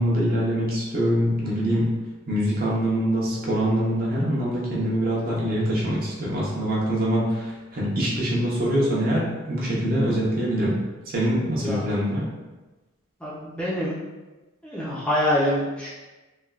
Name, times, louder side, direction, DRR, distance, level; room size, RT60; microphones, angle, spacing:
voice 1, 0.0-1.9 2.3-10.8 11.1-12.2, equal, 45° right, -5 dB, 0.7 m, -24 dB
voice 2, 13.2-13.9 14.6-15.9, left 1 dB, 5° left, -8 dB, 0.4 m, -25 dB
3.2 x 2.2 x 2.3 m, 1.2 s
head